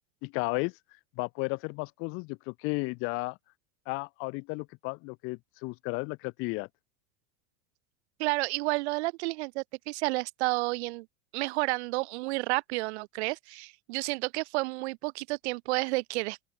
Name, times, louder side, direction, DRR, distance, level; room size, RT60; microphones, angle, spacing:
voice 1, 0.2-0.8 1.2-3.4 3.9-6.7, left 28 dB, 40° left, 0.5 m, -33 dB
voice 2, 8.2-11.1 11.3-16.5, right 23 dB, 80° right, 0.5 m, -31 dB
open air
supercardioid pair, 155°, 33 cm